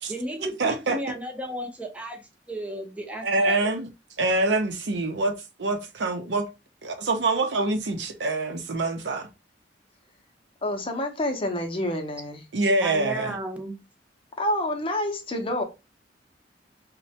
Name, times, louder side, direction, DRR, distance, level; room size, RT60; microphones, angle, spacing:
voice 1, 0.1-3.7 12.8-13.8, right 1 dB, 10° right, 0.6 m, -34 dB
voice 2, 0.6-1.0 3.2-3.9 4.2-5.3 5.6-6.5 6.8-9.3 12.5-13.4, right 2 dB, 80° right, 0.6 m, -25 dB
voice 3, 10.6-12.4 14.4-15.6, left 1 dB, 30° left, 0.6 m, -28 dB
3.1 x 2.1 x 2.7 m
head